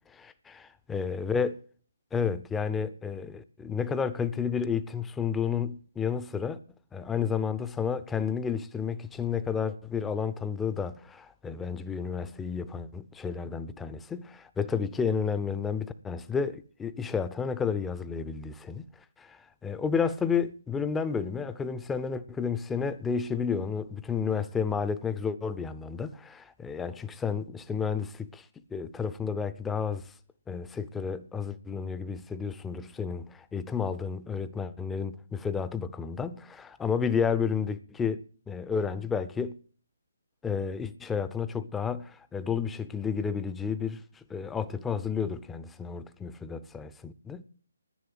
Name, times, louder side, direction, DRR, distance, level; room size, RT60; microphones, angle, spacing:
voice 1, 0.1-1.6 2.1-6.6 6.9-18.9 19.2-28.5 28.7-30.1 30.5-38.2 38.5-39.6 40.4-47.4, left 6 dB, 10° left, 0.6 m, -31 dB
10.5 x 10.0 x 8.0 m
figure-of-eight pair, 150°, 0 cm